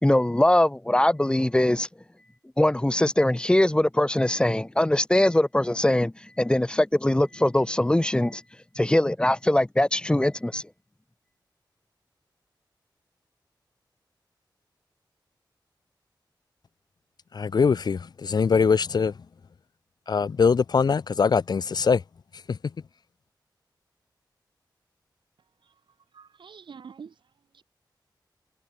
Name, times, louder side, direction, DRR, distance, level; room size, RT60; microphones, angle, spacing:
voice 1, 0.0-1.9 2.6-8.4 8.8-10.6, left 1 dB, 10° left, 0.8 m, -22 dB
voice 2, 17.3-19.1 20.1-22.0 22.5-22.6, left 5 dB, 60° left, 0.9 m, -22 dB
voice 3, 26.1-27.2 27.5-27.6, right 6 dB, 90° right, 2.3 m, -45 dB
wide cardioid pair, 125°, 8 cm